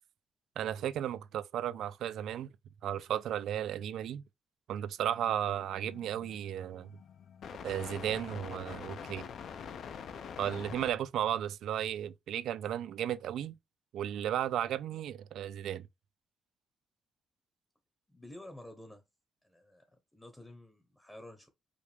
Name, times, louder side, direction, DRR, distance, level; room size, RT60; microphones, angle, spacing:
voice 1, 0.6-2.5 2.8-4.2 4.7-6.9 7.6-9.2 10.4-13.5 13.9-15.9, right 10 dB, 80° right, 0.3 m, -34 dB
sound 1, 5.4-10.9, left 7 dB, 60° left, 0.6 m, -45 dB
voice 2, 18.1-19.0 19.4-19.8 20.1-21.5, left 1 dB, 10° left, 0.8 m, -50 dB
5.1 x 2.3 x 3.3 m
cardioid pair, 130°, 0 cm